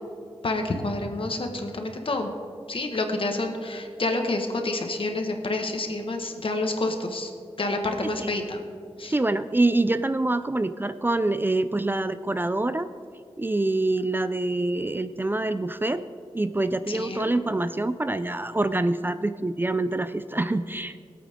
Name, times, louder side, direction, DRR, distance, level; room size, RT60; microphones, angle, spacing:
voice 1, 0.4-2.3 2.7-7.3 7.6-8.6 9.0-9.2 16.9-17.3, left 2 dB, 60° left, 4 dB, 1.6 m, -28 dB
voice 2, 9.1-12.9 13.4-16.0 16.3-21.0, right 2 dB, 20° right, 12 dB, 0.4 m, -25 dB
21.5 x 8.5 x 3.7 m, 2.3 s
wide cardioid pair, 65°, 10 cm